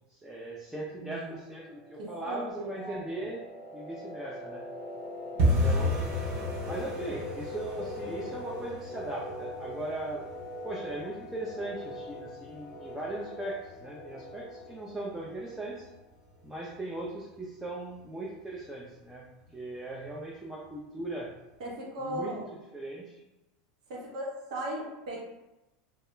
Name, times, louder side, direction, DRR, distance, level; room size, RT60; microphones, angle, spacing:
voice 1, 0.1-3.4 3.7-4.6 5.3-6.3 6.6-10.2 10.6-15.9 16.4-19.3 19.5-21.3 22.0-22.4 22.7-23.2, right 2 dB, 10° right, -4 dB, 0.4 m, -38 dB
voice 2, 1.0-1.4 2.0-3.0 21.6-22.6 23.9-25.2, right 1 dB, 80° right, -3 dB, 0.8 m, -37 dB
sound 1, 1.6-16.2, left 2 dB, 45° left, 0.6 m, -42 dB
sound 2, 5.4-16.1 16.4-17.1 17.3-17.6 17.9-18.3 18.6-18.7 19.2-19.7 20.0-20.1 20.6-20.7, equal, 45° right, 0.7 m, -34 dB
2.3 x 2.1 x 3.0 m, 0.99 s
supercardioid pair, 130°, 4 cm